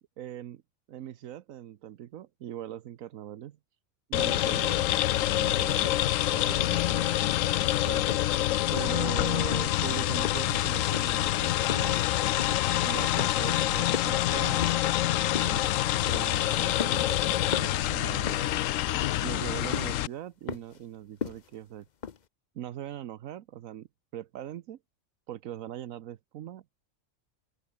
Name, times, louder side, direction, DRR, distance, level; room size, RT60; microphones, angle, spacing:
voice 1, 0.2-0.6 0.9-3.6 4.1-6.0 6.3-7.1 7.8-8.0 8.7-12.0 12.8-14.6 15.3-15.7 16.0-18.5 19.2-21.9 22.5-23.9 24.1-24.8 25.3-26.6, right 11 dB, 85° right, 1.2 m, -40 dB
sound 1, 4.1-20.1, left 14 dB, 80° left, 1.0 m, -26 dB
sound 2, 7.3-7.6 8.1-8.4 8.8-9.1 9.5-9.8 10.2-10.7 10.9-11.2 11.7-12.0 12.4-12.9 13.2-13.6 13.9-14.9 15.4-15.7 16.1-16.4 16.8-17.2 17.5-17.8 18.3-18.6 19.0-19.4 19.7-20.0 20.5-20.8 21.2-21.6 22.0-22.2, left 7 dB, 40° left, 0.8 m, -36 dB
open air
omnidirectional pair, 1.4 m